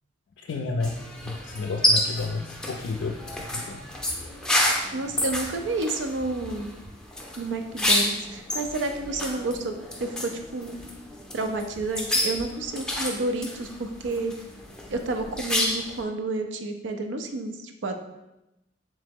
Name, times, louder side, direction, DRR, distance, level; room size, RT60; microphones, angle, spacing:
voice 1, 0.4-3.8, left 3 dB, 75° left, 2 dB, 0.3 m, -32 dB
sound 1, 0.8-16.0, left 1 dB, 5° left, 0.5 m, -29 dB
voice 2, 4.9-6.7 7.4-9.7 10.0-10.8 11.3-14.3 14.9-17.9, right 2 dB, 75° right, 6 dB, 0.5 m, -30 dB
3.8 x 3.2 x 3.5 m, 0.94 s
head